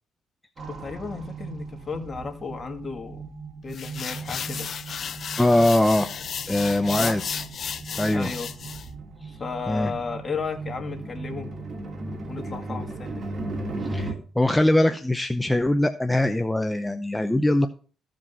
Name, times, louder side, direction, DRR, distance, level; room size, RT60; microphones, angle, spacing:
sound 1, 0.6-14.1, right 3 dB, 45° right, 2.9 m, -37 dB
voice 1, 0.7-3.3 3.6-4.7 7.0-7.3 8.1-8.5 9.4-11.5 12.3-13.2, left 5 dB, 35° left, 6 dB, 1.9 m, -34 dB
sound 2, 3.7-8.9, left 7 dB, 55° left, 0.7 m, -34 dB
voice 2, 5.4-6.1 6.5-7.4 8.0-8.3 9.2-9.3 9.7-9.9 13.8-17.7, left 1 dB, 10° left, 7 dB, 0.7 m, -22 dB
14.5 x 5.2 x 5.5 m, 0.39 s
cardioid pair, 90°, 0 cm